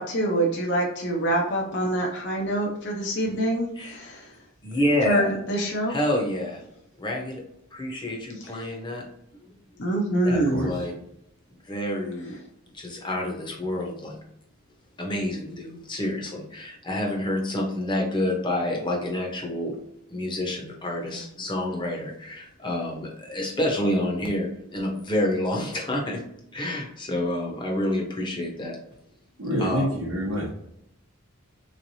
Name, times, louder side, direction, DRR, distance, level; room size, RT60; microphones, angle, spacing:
voice 1, 0.0-4.3 5.1-5.9 8.4-8.5 9.8-10.8, right 1 dB, 55° left, -1 dB, 0.8 m, -25 dB
voice 2, 4.6-5.3 5.9-6.6 7.0-7.4 7.7-9.0 9.5-9.6 10.2-11.0 11.6-12.4 12.7-14.2 15.0-19.8 20.1-26.2 26.5-28.8 29.6-29.9, left 1 dB, 20° left, 0 dB, 0.8 m, -28 dB
voice 3, 10.3-10.7 29.4-30.5, equal, 75° right, -5 dB, 0.8 m, -27 dB
3.8 x 3.2 x 2.7 m, 0.79 s
head